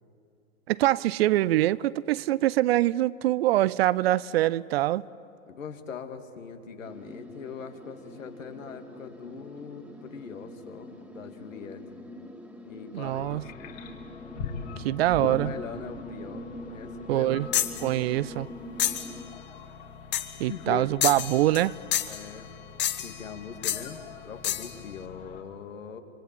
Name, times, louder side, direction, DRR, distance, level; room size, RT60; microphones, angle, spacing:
voice 1, 0.7-5.1 12.9-13.4 14.8-15.5 17.1-17.5 17.8-18.5 20.4-21.8, right 15 dB, 50° right, 0.6 m, -24 dB
voice 2, 5.5-12.0 12.6-13.4 15.2-17.4 20.5-21.3 22.1-22.5 23.0-26.0, left 6 dB, 70° left, 2.6 m, -41 dB
sound 1, 6.8-19.3, equal, 5° right, 2.4 m, -44 dB
sound 2, 13.0-25.4, left 6 dB, 50° left, 3.5 m, -43 dB
sound 3, 17.5-17.8 18.8-19.1 20.1-20.4 21.0-21.7 21.9-22.2 22.8-23.2 23.6-23.9 24.4-24.7, left 11 dB, 25° left, 1.3 m, -28 dB
26.0 x 25.0 x 9.1 m
figure-of-eight pair, 100°, 40 cm